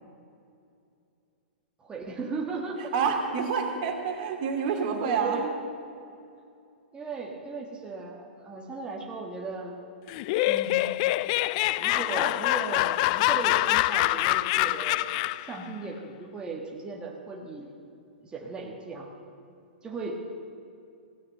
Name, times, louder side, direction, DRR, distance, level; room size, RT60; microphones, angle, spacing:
voice 1, 1.8-2.9 4.6-5.4 6.9-9.7 10.4-11.0 11.8-17.7 18.2-19.1 19.8-20.1, right 3 dB, 15° right, -1 dB, 1.7 m, -37 dB
voice 2, 2.8-5.5, right 6 dB, 50° right, 3 dB, 2.6 m, -28 dB
Laughter, 10.1-15.5, left 18 dB, 40° left, 0.3 m, -25 dB
16.0 x 9.5 x 7.8 m, 2.6 s
hypercardioid pair, 115°, 6 cm